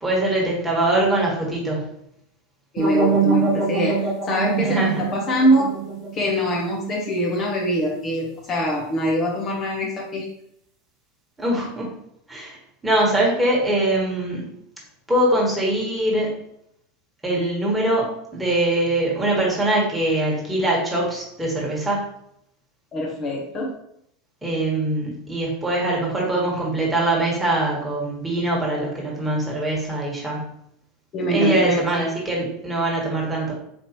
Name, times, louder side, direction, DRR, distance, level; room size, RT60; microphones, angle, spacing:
voice 1, 0.0-1.9 4.6-5.0 11.4-11.9 12.3-12.6 12.8-14.5 15.1-16.3 17.2-22.0 24.4-30.5 31.3-33.5, right 1 dB, 10° right, -4 dB, 1.6 m, -22 dB
voice 2, 2.7-4.0 4.2-5.7 6.1-10.3 22.9-23.7 31.1-32.0, equal, 35° left, -2 dB, 0.9 m, -23 dB
sound 1, 2.8-7.7, right 5 dB, 45° right, 1.4 m, -25 dB
4.3 x 2.9 x 3.0 m, 0.73 s
figure-of-eight pair, 85°, 0 cm